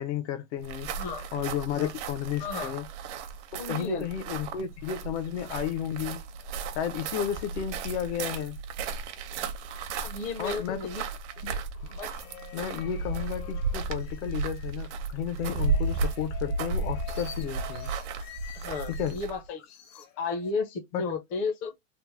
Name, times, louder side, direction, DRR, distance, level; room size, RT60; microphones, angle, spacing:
voice 1, 0.0-0.9 1.3-2.8 3.5-6.2 6.8-8.6 10.4-10.8 11.4-11.5 12.5-17.9 19.0-19.2 20.9-21.1, left 9 dB, 60° left, 0.8 m, -33 dB
sound 1, 0.6-19.5, right 4 dB, 65° right, 0.7 m, -34 dB
voice 2, 1.0-1.3 1.7-1.9 2.4-2.7 3.6-4.1 10.0-11.0 11.9-12.1 18.5-19.6 19.9-21.7, left 4 dB, 20° left, 0.5 m, -33 dB
sound 2, 11.7-14.8 15.3-19.3 19.6-20.5, left 11 dB, 80° left, 1.1 m, -48 dB
3.2 x 2.0 x 3.0 m
supercardioid pair, 170°, 38 cm